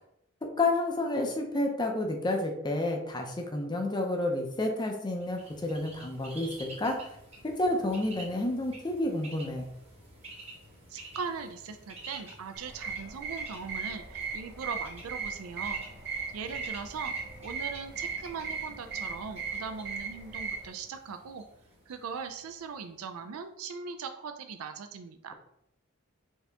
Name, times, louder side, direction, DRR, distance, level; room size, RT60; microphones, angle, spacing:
voice 1, 0.4-7.2 7.4-9.6, left 2 dB, 20° left, 2 dB, 0.5 m, -30 dB
Bird, 5.1-22.9, right 1 dB, 30° right, 1.3 m, -50 dB
voice 2, 10.9-15.8 16.3-17.1 17.4-21.4 21.9-25.3, right 5 dB, 80° right, 7 dB, 0.4 m, -40 dB
sound 1, 12.6-20.7, right 5 dB, 50° right, 1.1 m, -38 dB
4.5 x 2.8 x 3.4 m, 0.76 s
head